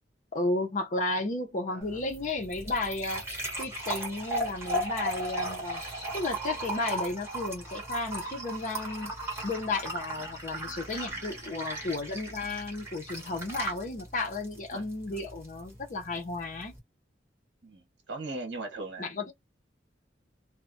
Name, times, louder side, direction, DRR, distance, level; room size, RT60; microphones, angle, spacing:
voice 1, 0.3-3.2 3.6-5.8 6.1-9.1 9.4-16.8 19.0-19.3, left 2 dB, 45° left, 0.6 m, -33 dB
sound 1, 1.8-16.8, right 1 dB, 15° right, 1.1 m, -37 dB
voice 2, 11.1-11.5 14.7-14.9 17.6-19.3, right 2 dB, 80° right, 1.0 m, -40 dB
2.4 x 2.1 x 2.5 m
head